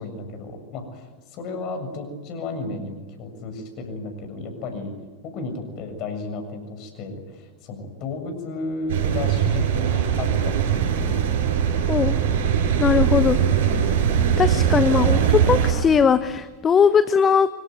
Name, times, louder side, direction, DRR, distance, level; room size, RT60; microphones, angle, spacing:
voice 1, 0.0-4.9 5.2-11.6 11.9-12.1 15.0-15.5, left 3 dB, 40° left, 6 dB, 7.4 m, -33 dB
sound 1, 8.9-15.7, right 8 dB, 55° right, 7.8 m, -21 dB
voice 2, 12.8-13.4 14.4-17.5, left 6 dB, 20° left, 14 dB, 0.9 m, -19 dB
26.0 x 24.0 x 9.5 m, 1.4 s
figure-of-eight pair, 90°, 0 cm